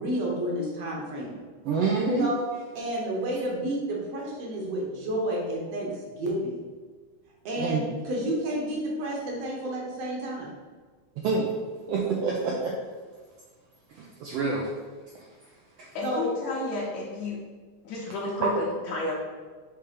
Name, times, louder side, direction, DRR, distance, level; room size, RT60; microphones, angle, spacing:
voice 1, 0.0-1.3 2.1-2.5 2.8-6.6 7.5-10.5 16.0-16.3, right 1 dB, 65° right, -3 dB, 1.9 m, -30 dB
voice 2, 1.6-2.3 7.5-7.8 11.2-11.5 11.9-12.7 13.9-14.7 15.1-15.3 15.8-16.0 18.4-18.5, right 4 dB, 85° right, -2 dB, 1.4 m, -27 dB
voice 3, 16.0-17.4 17.8-19.2, left 2 dB, 70° left, -4 dB, 2.1 m, -31 dB
5.8 x 3.3 x 5.0 m, 1.5 s
omnidirectional pair, 3.5 m